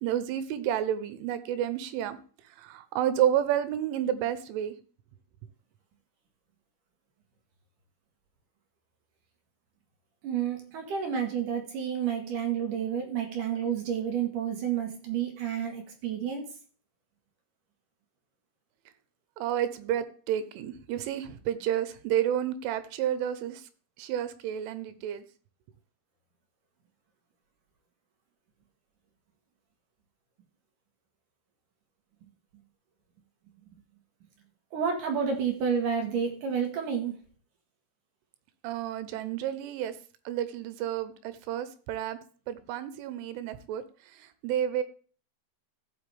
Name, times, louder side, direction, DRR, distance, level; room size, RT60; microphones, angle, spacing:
voice 1, 0.0-2.2 2.6-4.7 19.4-23.6 24.0-25.2 38.6-39.9 40.3-42.2 42.5-43.8 44.4-44.8, right 10 dB, 90° right, 13 dB, 3.3 m, -30 dB
voice 2, 10.2-16.5 34.7-37.2, right 7 dB, 65° right, 3 dB, 2.1 m, -30 dB
15.0 x 5.9 x 3.4 m, 0.40 s
omnidirectional pair, 5.5 m